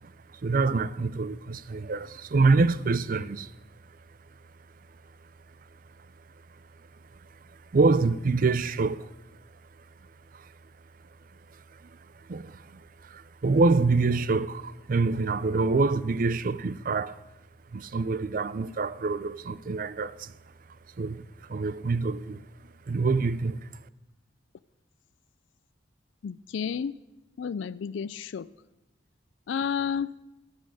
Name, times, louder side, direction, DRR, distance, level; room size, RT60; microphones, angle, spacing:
voice 1, 0.0-3.5 7.7-9.1 10.3-10.5 12.2-17.2 17.7-20.3 21.0-22.5 22.9-23.7, right 3 dB, 45° right, 0.4 m, -26 dB
voice 2, 26.2-27.0 27.4-28.5 29.5-30.1, left 7 dB, 80° left, 0.4 m, -31 dB
15.0 x 5.6 x 9.0 m
head